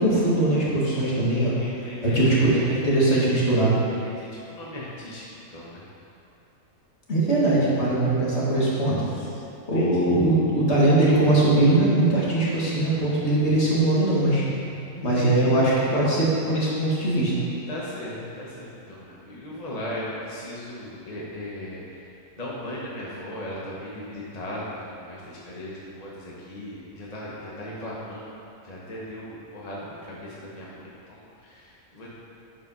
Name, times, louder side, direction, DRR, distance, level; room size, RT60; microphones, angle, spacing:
voice 1, 0.0-1.5 2.0-3.7 7.1-9.0 9.7-14.4 15.0-17.3, right 2 dB, 50° left, -7 dB, 2.0 m, -21 dB
voice 2, 1.6-2.6 3.8-5.3 5.5-5.8 9.2-10.2 14.9-15.7 17.7-22.0 22.4-28.3 28.6-32.1, left 1 dB, 30° left, -6 dB, 1.1 m, -37 dB
8.5 x 5.0 x 5.5 m, 2.7 s
omnidirectional pair, 1.5 m